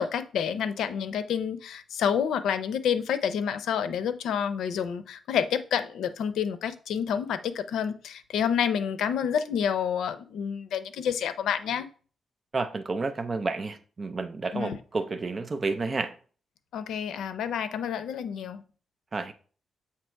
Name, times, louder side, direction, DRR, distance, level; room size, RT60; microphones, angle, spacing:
voice 1, 0.0-11.9 14.5-14.8 16.7-18.6, left 8 dB, 90° left, 0.5 m, -29 dB
voice 2, 12.5-16.2 19.1-19.3, right 3 dB, 30° right, 0.6 m, -30 dB
7.4 x 2.9 x 4.5 m
cardioid pair, 130°, 0 cm